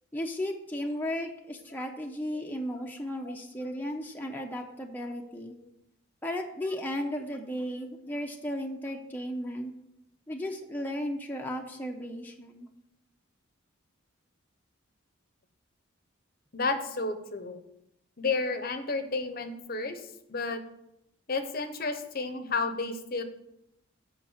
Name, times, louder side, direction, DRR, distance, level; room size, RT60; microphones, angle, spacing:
voice 1, 0.1-5.5 6.2-9.7 10.3-12.7, equal, 10° left, 1 dB, 0.7 m, -35 dB
voice 2, 16.5-17.6 18.2-20.6 21.3-23.2, left 3 dB, 45° left, 8 dB, 0.8 m, -32 dB
9.0 x 5.3 x 7.3 m, 0.82 s
head